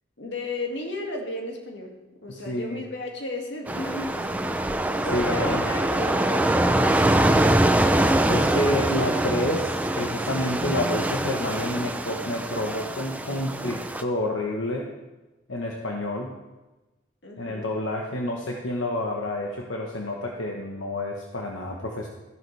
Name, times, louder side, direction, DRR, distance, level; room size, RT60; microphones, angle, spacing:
voice 1, 0.2-2.0 2.2-7.0 17.2-17.7, left 2 dB, 65° left, 1 dB, 2.0 m, -34 dB
voice 2, 2.3-2.8 5.1-5.6 7.3-7.7 8.3-14.9 15.5-16.3 17.4-22.1, left 1 dB, 85° left, 0 dB, 1.1 m, -29 dB
sound 1, 3.7-14.0, right 1 dB, 10° right, 0.4 m, -24 dB
14.0 x 11.0 x 3.3 m, 1.1 s
head